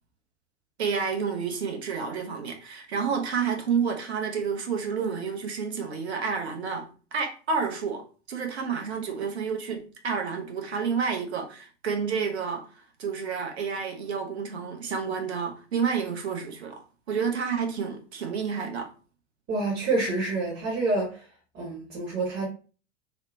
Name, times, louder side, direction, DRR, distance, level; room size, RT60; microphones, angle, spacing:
voice 1, 0.8-12.6 13.0-18.9, right 6 dB, 65° right, 0.7 m, -30 dB
voice 2, 19.5-21.2 21.5-22.5, right 2 dB, 30° right, 1.1 m, -27 dB
2.9 x 2.0 x 2.6 m
figure-of-eight pair, 90°, 35 cm